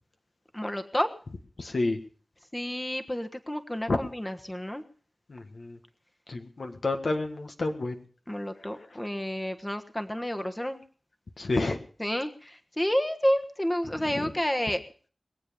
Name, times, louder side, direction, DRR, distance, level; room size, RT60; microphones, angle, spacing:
voice 1, 0.5-1.1 2.5-4.8 8.3-10.8 12.0-14.8, equal, 20° left, 7 dB, 1.4 m, -30 dB
voice 2, 1.6-2.0 3.9-4.0 5.3-5.8 6.3-8.0 11.4-11.8 14.0-14.3, left 2 dB, 75° left, 5 dB, 1.7 m, -29 dB
21.5 x 7.6 x 6.9 m, 0.42 s
cardioid pair, 40°, 0 cm